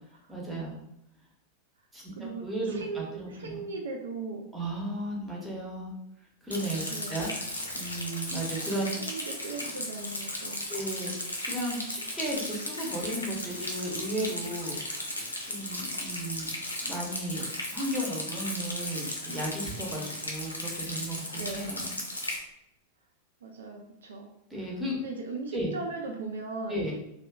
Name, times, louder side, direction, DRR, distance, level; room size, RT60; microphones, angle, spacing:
voice 1, 0.3-0.8 1.9-3.7 4.5-5.9 6.4-6.8 7.1-7.3 7.7-9.1 10.7-11.1 11.5-14.8 15.1-17.5 17.7-21.9 24.5-25.0 25.5-25.7 26.7-26.9, right 1 dB, 5° right, -4 dB, 0.8 m, -34 dB
voice 2, 2.2-4.5 6.9-7.2 9.0-10.6 21.4-21.7 23.4-24.3 24.9-26.9, right 4 dB, 65° right, 2 dB, 0.3 m, -38 dB
Rain, 6.5-22.4, left 1 dB, 80° left, 0.5 m, -36 dB
2.6 x 2.2 x 2.3 m, 0.81 s
figure-of-eight pair, 90°, 0 cm